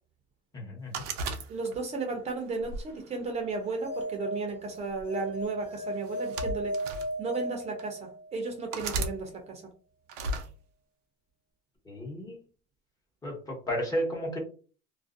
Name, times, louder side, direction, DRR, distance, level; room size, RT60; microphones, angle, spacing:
voice 1, 0.5-1.0 11.9-12.4 13.2-14.4, equal, 20° left, -1 dB, 1.0 m, -33 dB
sound 1, 0.9-2.0 2.6-3.8 4.8-5.0 6.0-7.1 7.8-7.9 8.7-9.2 10.1-10.5, right 2 dB, 90° right, 0.5 m, -34 dB
voice 2, 1.5-6.8 7.2-9.6, right 4 dB, 35° right, 3 dB, 0.5 m, -34 dB
sound 2, 3.6-8.4, equal, 70° left, 0.8 m, -36 dB
2.5 x 2.0 x 2.4 m, 0.38 s
cardioid pair, 125°, 19 cm